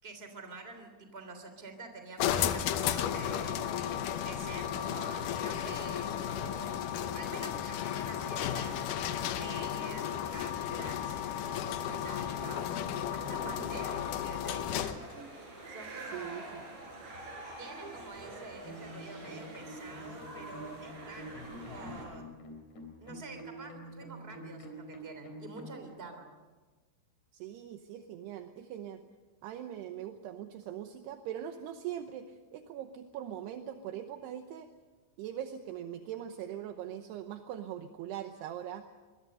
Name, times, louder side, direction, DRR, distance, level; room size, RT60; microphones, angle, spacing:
voice 1, 0.0-3.6 4.2-11.2 11.8-12.6 13.1-15.2 15.7-16.7 17.6-22.3 23.0-26.3, right 3 dB, 15° right, 6 dB, 2.7 m, -47 dB
sound 1, 2.2-15.1, left 10 dB, 85° left, 1.9 m, -34 dB
sound 2, 2.7-22.0, right 2 dB, 40° right, 6.9 m, -48 dB
voice 2, 16.1-16.6 27.3-29.0 29.4-34.7 35.2-38.8, right 10 dB, 75° right, 6 dB, 2.8 m, -41 dB
sound 3, 18.6-25.8, equal, 65° left, 5.4 m, -47 dB
25.5 x 21.0 x 6.7 m, 1.3 s
omnidirectional pair, 5.2 m